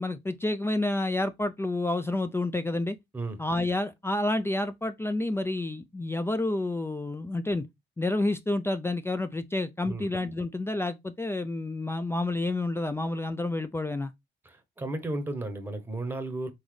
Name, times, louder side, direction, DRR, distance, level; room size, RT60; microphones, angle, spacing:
voice 1, 0.0-3.0 3.4-7.6 8.0-14.1, left 2 dB, 10° left, 0.4 m, -29 dB
voice 2, 14.4-16.5, right 2 dB, 10° right, 1.0 m, -34 dB
3.9 x 3.9 x 3.2 m
cardioid pair, 90°, 20 cm